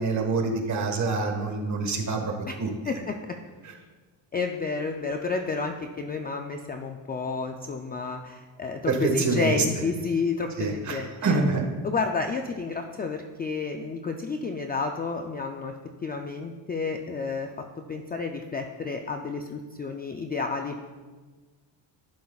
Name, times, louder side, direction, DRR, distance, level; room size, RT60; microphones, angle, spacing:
voice 1, 0.0-2.3 2.6-2.7 8.9-9.6 10.6-11.6, right 3 dB, 35° right, 3 dB, 1.4 m, -26 dB
voice 2, 2.9-3.2 4.3-11.4 11.8-15.7 16.0-17.5 17.9-20.8, left 4 dB, 20° left, 4 dB, 0.3 m, -30 dB
11.5 x 10.5 x 2.3 m, 1.4 s
cardioid pair, 150°, 47 cm